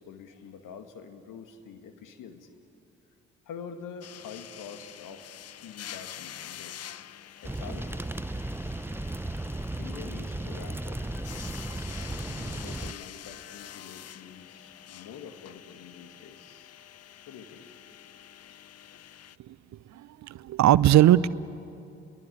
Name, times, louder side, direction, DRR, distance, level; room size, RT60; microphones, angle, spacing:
voice 1, 0.0-2.5 3.5-5.3 5.6-6.8 7.4-8.1 9.8-11.0 12.2-16.7 17.3-17.7, left 7 dB, 60° left, 7 dB, 2.2 m, -46 dB
sound 1, 4.0-19.4, left 10 dB, 45° left, 0.8 m, -46 dB
sound 2, 7.4-12.9, right 2 dB, 5° right, 0.7 m, -35 dB
voice 2, 19.9-21.3, right 13 dB, 50° right, 19 dB, 0.7 m, -20 dB
29.5 x 22.5 x 8.6 m, 2.7 s
hypercardioid pair, 45°, 36 cm